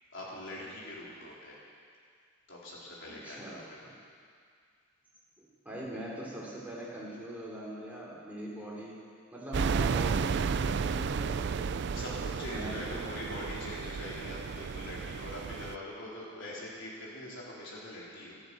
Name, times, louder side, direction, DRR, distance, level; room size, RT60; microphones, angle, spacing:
voice 1, 0.1-1.6 2.5-3.8 11.9-18.3, left 1 dB, 60° left, -6 dB, 4.1 m, -43 dB
voice 2, 3.1-3.9 5.4-9.0 9.3-11.7 12.5-13.0, right 1 dB, 5° right, -5 dB, 3.2 m, -41 dB
sound 1, 9.5-15.8, right 5 dB, 55° right, 0.3 m, -33 dB
13.0 x 12.0 x 7.9 m, 2.1 s
head